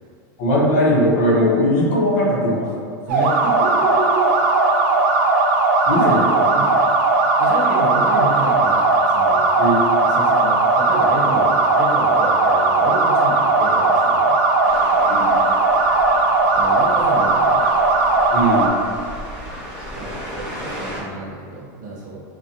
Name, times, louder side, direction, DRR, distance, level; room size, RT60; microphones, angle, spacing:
voice 1, 0.4-2.7 5.9-6.3 9.6-9.8 15.1-15.3 18.3-18.7, equal, 50° left, -5 dB, 0.7 m, -18 dB
sound 1, 3.1-18.7, right 3 dB, 55° right, 0.4 m, -17 dB
voice 2, 3.1-4.4 6.0-6.3 6.6-6.7 7.4-9.5 10.0-14.4 16.5-17.6 19.9-22.2, right 2 dB, 70° right, -4 dB, 0.7 m, -29 dB
sound 2, 14.6-21.0, equal, 10° right, 0.6 m, -34 dB
2.5 x 2.1 x 2.8 m, 2.2 s
supercardioid pair, 165°, 10 cm